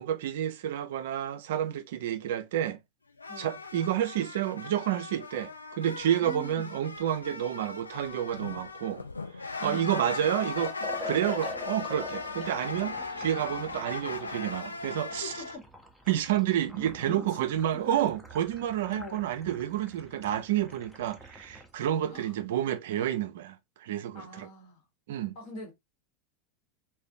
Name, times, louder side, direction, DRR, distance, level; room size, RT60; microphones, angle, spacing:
voice 1, 0.0-2.8 3.4-9.0 9.6-15.3 16.1-24.5 25.1-25.4, right 11 dB, 65° right, 0.3 m, -30 dB
sound 1, 3.2-15.6, left 4 dB, 90° left, 0.3 m, -38 dB
voice 2, 3.3-3.6 6.2-6.7 9.6-10.2 15.2-15.7 16.7-18.0 18.9-19.3 22.1-22.3 24.1-24.8 25.3-25.7, equal, 55° left, 1.0 m, -43 dB
Liquid, 10.5-21.7, left 1 dB, ahead, 0.5 m, -45 dB
2.5 x 2.1 x 2.5 m
figure-of-eight pair, 85°, 0 cm